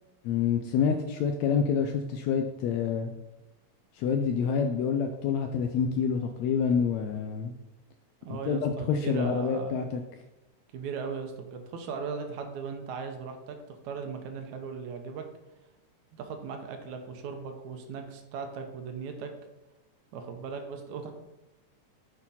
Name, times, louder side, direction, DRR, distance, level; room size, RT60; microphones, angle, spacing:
voice 1, 0.2-3.1 3.9-7.5 8.3-10.0, left 6 dB, 85° left, 5 dB, 1.5 m, -27 dB
voice 2, 8.2-9.8 10.7-15.2 16.1-19.3 20.1-21.1, right 5 dB, 75° right, 5 dB, 2.1 m, -38 dB
8.3 x 4.4 x 5.6 m, 1.0 s
omnidirectional pair, 3.7 m